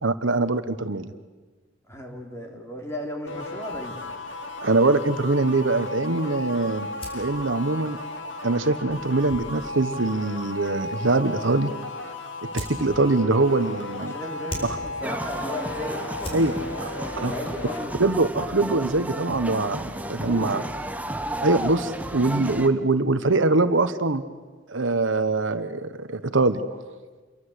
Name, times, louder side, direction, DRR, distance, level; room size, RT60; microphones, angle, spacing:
voice 1, 0.0-1.1 4.6-6.9 7.1-8.0 8.4-11.7 12.5-14.1 16.3-16.6 16.8-16.9 17.2-17.3 18.0-20.6 21.4-24.2 24.7-26.6, right 2 dB, 75° right, 11 dB, 1.2 m, -23 dB
voice 2, 1.9-4.2 14.0-16.1 16.6-18.2 20.0-20.7, left 1 dB, 15° left, 1 dB, 3.8 m, -36 dB
sound 1, 3.3-17.9, left 2 dB, 70° left, 2.6 m, -35 dB
sound 2, 6.9-20.5, left 1 dB, 30° left, 6.2 m, -45 dB
sound 3, 15.0-22.7, right 1 dB, 10° right, 1.0 m, -33 dB
28.0 x 23.5 x 8.2 m, 1.4 s
head